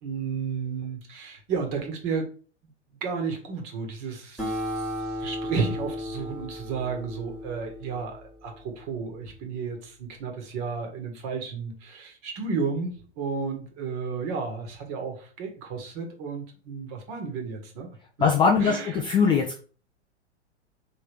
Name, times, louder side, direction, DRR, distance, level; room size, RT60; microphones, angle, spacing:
voice 1, 0.0-2.3 3.0-17.9 18.6-19.0, right 5 dB, 40° right, 3 dB, 1.5 m, -32 dB
Acoustic guitar, 4.4-9.2, left 1 dB, ahead, 1.4 m, -35 dB
voice 2, 18.2-19.6, left 5 dB, 15° left, 1 dB, 0.4 m, -21 dB
3.5 x 3.3 x 4.6 m, 0.39 s
hypercardioid pair, 105°, 35 cm